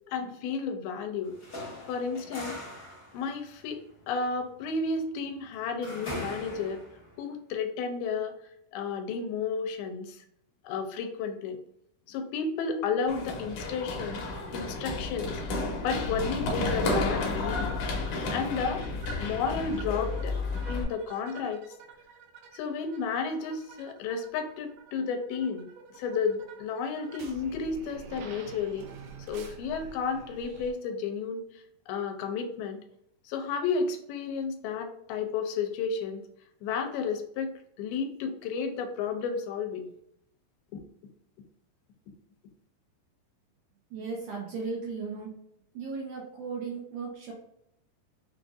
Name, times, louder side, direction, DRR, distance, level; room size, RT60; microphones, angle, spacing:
voice 1, 0.1-1.4 1.9-2.6 3.1-6.8 7.2-8.4 8.7-10.2 10.6-11.6 12.1-14.3 14.5-15.4 15.8-17.8 18.3-18.9 19.2-20.4 20.7-21.6 22.5-28.9 29.3-31.4 31.9-32.8 33.3-36.2 36.6-39.9 40.7-40.8, left 5 dB, 85° left, 5 dB, 2.5 m, -32 dB
sound 1, 1.2-7.2, left 1 dB, 45° left, 1.1 m, -42 dB
Run, 13.1-20.8, left 3 dB, 70° left, 2.0 m, -32 dB
sound 2, 17.3-30.7, right 6 dB, 90° right, 1.8 m, -48 dB
voice 2, 43.9-45.3 45.7-47.3, right 4 dB, 70° right, -2 dB, 2.0 m, -36 dB
6.1 x 2.5 x 2.5 m, 0.75 s
omnidirectional pair, 4.4 m